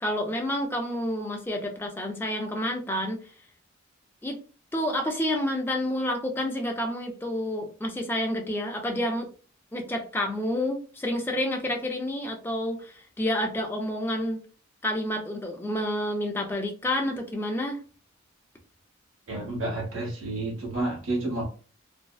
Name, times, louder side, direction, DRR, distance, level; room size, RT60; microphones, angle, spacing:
voice 1, 0.0-3.2 4.2-4.4 4.7-9.3 9.7-14.4 14.8-17.8, left 1 dB, 10° left, 0.4 m, -29 dB
voice 2, 19.3-21.4, right 2 dB, 75° right, 1.0 m, -30 dB
2.6 x 2.0 x 2.3 m
head